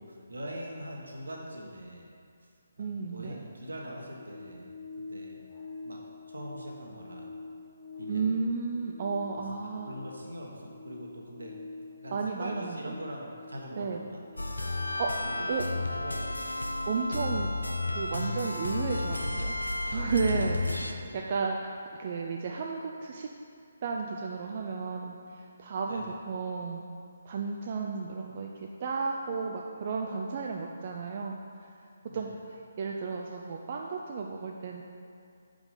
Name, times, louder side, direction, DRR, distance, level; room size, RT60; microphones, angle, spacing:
voice 1, 0.0-2.1 2.8-4.7 5.1-5.4 5.8-6.0 6.3-7.3 8.0-8.5 9.9-11.6 12.0-14.2 15.2-15.3 15.6-16.5 20.9-21.2 25.8-26.1 32.1-32.3, equal, 75° right, -1 dB, 1.2 m, -42 dB
voice 2, 2.8-3.4 8.1-9.9 12.1-12.9 13.8-14.0 15.0-15.1 15.5-15.6 16.9-17.5 17.9-19.5 19.9-23.3 23.8-26.8 27.2-31.4 32.1-32.3 32.8-34.8, right 4 dB, 40° right, 0 dB, 0.4 m, -33 dB
sound 1, 4.2-20.7 21.0-21.2, left 3 dB, 20° left, 1.7 m, -48 dB
sound 2, 14.4-20.9, left 2 dB, 85° left, 0.5 m, -32 dB
5.0 x 4.9 x 5.3 m, 2.3 s
figure-of-eight pair, 145°, 0 cm